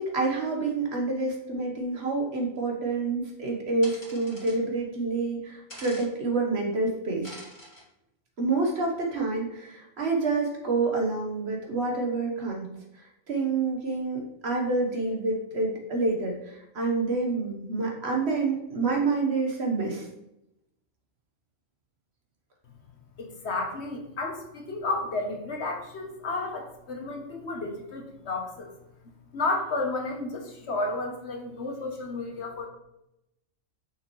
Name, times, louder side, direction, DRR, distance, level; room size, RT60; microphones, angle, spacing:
voice 1, 0.0-7.3 8.4-12.7 13.0-20.1, right 3 dB, 55° right, 1 dB, 1.4 m, -28 dB
sound 1, 3.8-4.6 5.7-6.1 7.2-7.8, left 1 dB, 35° left, 2.2 m, -44 dB
voice 2, 23.2-28.7 29.3-32.7, left 2 dB, 60° left, 3 dB, 1.2 m, -32 dB
6.1 x 5.7 x 3.1 m, 0.85 s
omnidirectional pair, 1.4 m